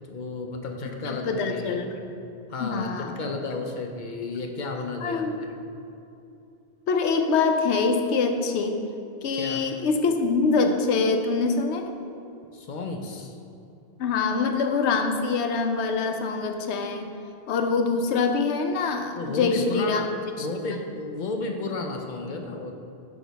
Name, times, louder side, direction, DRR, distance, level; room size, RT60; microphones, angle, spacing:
voice 1, 0.1-1.8 2.5-5.5 9.3-9.6 12.5-13.4 19.2-20.1 20.4-22.7, left 3 dB, 55° left, 3 dB, 0.6 m, -33 dB
voice 2, 1.0-2.0 2.6-3.2 5.0-5.4 6.9-8.8 9.2-12.0 14.0-17.1 17.5-20.0 20.4-20.5, left 4 dB, 85° left, 6 dB, 0.9 m, -24 dB
6.1 x 5.8 x 4.0 m, 2.7 s
omnidirectional pair, 1.1 m